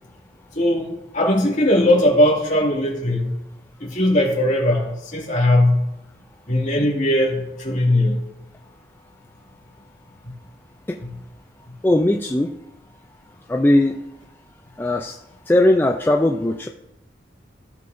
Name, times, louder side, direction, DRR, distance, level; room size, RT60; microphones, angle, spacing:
voice 1, 0.5-3.3 3.8-5.8 6.5-8.2 11.0-11.1, left 1 dB, 45° left, -2 dB, 2.2 m, -19 dB
voice 2, 11.8-12.5 13.5-14.0 14.8-15.1 15.5-16.7, left 1 dB, 10° left, 2 dB, 0.3 m, -18 dB
15.5 x 5.6 x 2.6 m, 0.87 s
head